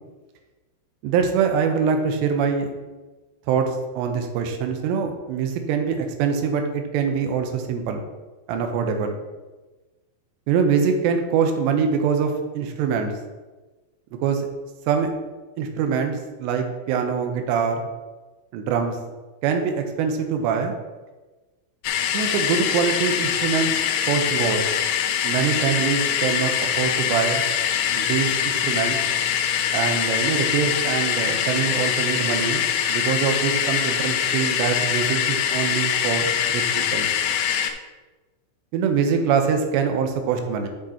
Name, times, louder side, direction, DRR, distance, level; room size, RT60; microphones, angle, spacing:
voice 1, 1.0-2.7 3.5-3.7 4.0-8.0 8.5-9.2 10.5-13.1 14.2-14.4 14.9-15.1 15.6-17.8 18.5-19.0 19.4-20.7 22.1-24.6 25.2-27.4 27.9-29.0 29.7-37.1 38.7-40.7, right 6 dB, 80° right, 5 dB, 2.8 m, -24 dB
sound 1, 21.8-37.7, left 9 dB, 80° left, 2.6 m, -23 dB
11.5 x 6.3 x 2.9 m, 1.2 s
omnidirectional pair, 5.5 m